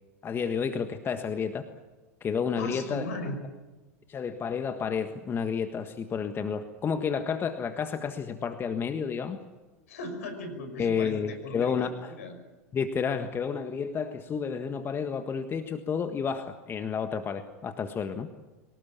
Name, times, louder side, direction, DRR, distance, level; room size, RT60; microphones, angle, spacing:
voice 1, 0.2-1.7 2.2-3.1 4.1-9.4 10.8-12.1 12.7-18.3, left 6 dB, 25° left, 8 dB, 1.6 m, -31 dB
voice 2, 2.6-3.4 9.9-12.4, left 1 dB, 70° left, 7 dB, 5.8 m, -37 dB
24.0 x 19.0 x 8.7 m, 1.2 s
figure-of-eight pair, 85°, 8 cm